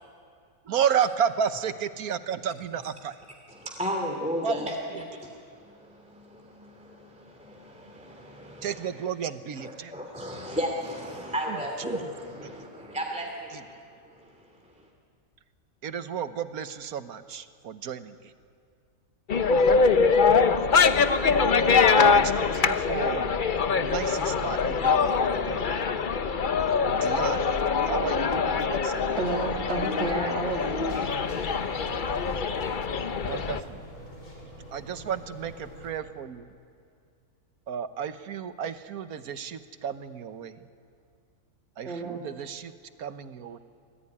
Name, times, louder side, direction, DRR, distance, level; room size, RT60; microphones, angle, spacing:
voice 1, 0.7-3.1 4.4-4.6 8.6-9.9 11.5-12.1 12.4-12.5 15.8-18.2 20.6-21.0 21.4-21.5 21.9-23.3 23.8-25.7 26.9-27.5 27.8-29.2 33.2-33.8 34.7-36.5 37.7-40.6 41.8-42.7 43.0-43.6, right 8 dB, 80° right, 11 dB, 1.5 m, -32 dB
voice 2, 3.5-8.9 9.6-13.8 14.0-14.9, equal, 5° right, 1 dB, 2.6 m, -35 dB
sound 1, 19.3-33.6, left 5 dB, 40° left, 0.8 m, -23 dB
voice 3, 29.0-31.0 41.8-42.3, right 3 dB, 45° right, 0 dB, 2.4 m, -31 dB
sound 2, 30.9-35.9, equal, 75° left, 5.6 m, -45 dB
24.5 x 19.5 x 9.8 m, 2.2 s
omnidirectional pair, 1.6 m